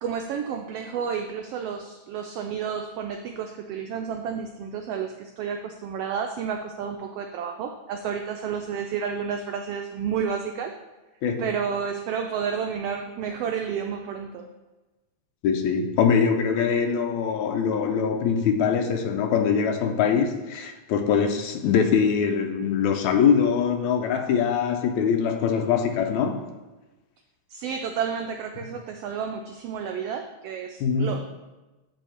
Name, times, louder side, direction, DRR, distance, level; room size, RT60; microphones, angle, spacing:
voice 1, 0.0-10.7 11.4-14.5 27.5-31.2, right 7 dB, 85° right, 1.3 m, -31 dB
voice 2, 15.4-26.5 30.8-31.2, left 6 dB, 85° left, 2.0 m, -23 dB
6.9 x 6.3 x 4.3 m
omnidirectional pair, 3.3 m